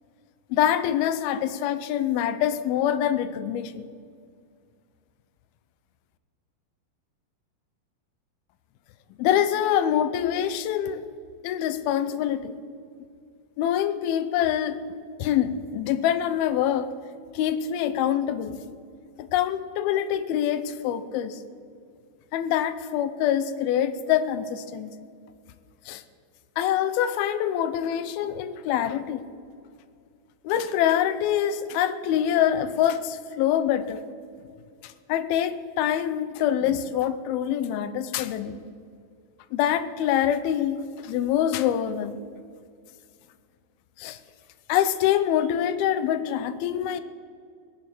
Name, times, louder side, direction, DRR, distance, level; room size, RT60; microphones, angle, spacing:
voice 1, 0.5-3.9 9.2-11.1 11.4-12.5 13.6-14.8 15.2-16.9 17.3-18.6 19.2-21.4 22.3-24.9 25.9-26.0 26.6-29.2 30.4-34.0 34.8-38.6 39.5-42.2 44.0-44.2 44.7-47.0, left 10 dB, 80° left, 13 dB, 2.5 m, -25 dB
20.0 x 9.3 x 6.1 m, 2.2 s
omnidirectional pair, 4.5 m